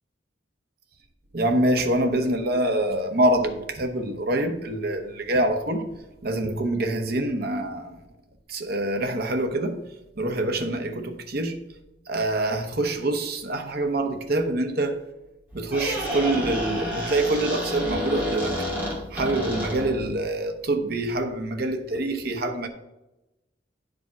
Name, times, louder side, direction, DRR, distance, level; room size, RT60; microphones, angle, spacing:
voice 1, 1.3-5.8 6.2-7.9 8.5-9.8 10.2-11.6 12.1-15.0 15.5-18.5 19.1-22.7, right 1 dB, 60° right, 5 dB, 1.0 m, -25 dB
Squeak, 15.5-20.1, equal, 10° right, 2.5 m, -29 dB
9.8 x 5.1 x 4.6 m, 0.96 s
head